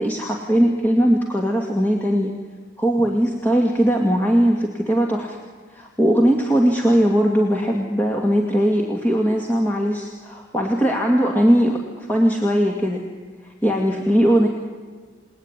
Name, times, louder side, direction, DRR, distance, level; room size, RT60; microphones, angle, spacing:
voice 1, 0.0-2.3 2.8-5.4 5.7-13.0 13.4-14.5, equal, 10° left, 0 dB, 2.2 m, -19 dB
29.0 x 20.0 x 9.8 m, 1.5 s
head